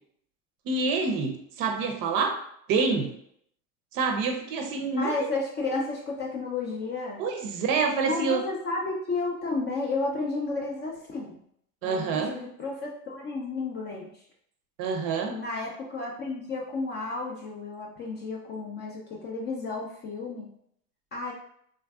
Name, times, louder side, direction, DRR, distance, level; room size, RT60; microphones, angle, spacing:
voice 1, 0.6-2.3 2.7-3.1 3.9-5.3 7.2-8.4 11.8-12.3 14.8-15.4, right 4 dB, 45° right, 5 dB, 0.6 m, -27 dB
voice 2, 5.0-7.2 8.0-11.4 11.8-14.1 15.3-20.5 21.1-21.3, left 3 dB, 25° left, -1 dB, 0.4 m, -32 dB
3.2 x 2.5 x 2.3 m, 0.68 s
hypercardioid pair, 100°, 46 cm